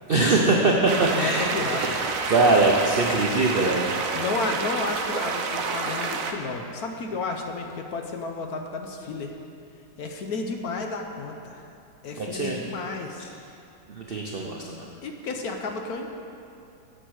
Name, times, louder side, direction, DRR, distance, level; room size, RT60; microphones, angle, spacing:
voice 1, 0.1-1.9 2.3-3.9 12.2-12.6 13.9-14.8, right 2 dB, 80° right, -1 dB, 0.5 m, -22 dB
sound 1, 0.9-6.3, right 4 dB, 60° right, 0.9 m, -29 dB
voice 2, 1.2-2.1 4.1-9.3 10.0-11.6 12.0-13.3 14.4-14.5 15.0-16.1, left 3 dB, 65° left, 4 dB, 1.1 m, -32 dB
8.0 x 7.5 x 6.3 m, 2.6 s
omnidirectional pair, 2.0 m